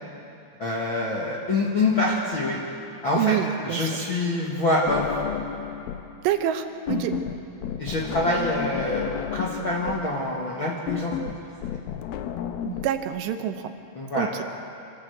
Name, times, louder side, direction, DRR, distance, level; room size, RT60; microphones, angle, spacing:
voice 1, 0.6-2.6 3.0-3.4 3.6-5.2 6.9-7.0 7.8-11.1 13.9-14.3, left 2 dB, 50° left, -4 dB, 1.6 m, -25 dB
voice 2, 3.2-3.9 6.2-7.2 12.7-13.7 14.1-14.4, right 10 dB, 80° right, 7 dB, 3.1 m, -26 dB
sound 1, 4.9-6.1 6.4-12.9, left 10 dB, 75° left, 2.3 m, -32 dB
25.5 x 14.5 x 8.0 m, 2.7 s
omnidirectional pair, 5.0 m